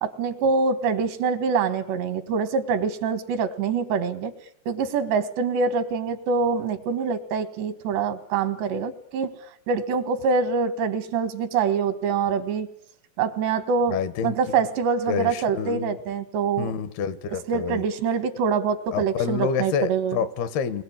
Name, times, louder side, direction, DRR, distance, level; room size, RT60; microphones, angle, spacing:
voice 1, 0.0-4.3 4.7-9.3 9.7-12.7 13.2-14.0 14.2-16.7 17.5-20.2, right 5 dB, 90° right, 11 dB, 3.9 m, -25 dB
voice 2, 13.9-14.4 15.1-16.0 16.6-17.8 18.9-20.8, left 7 dB, 75° left, 13 dB, 3.2 m, -28 dB
29.5 x 22.5 x 8.8 m, 0.69 s
omnidirectional pair, 4.8 m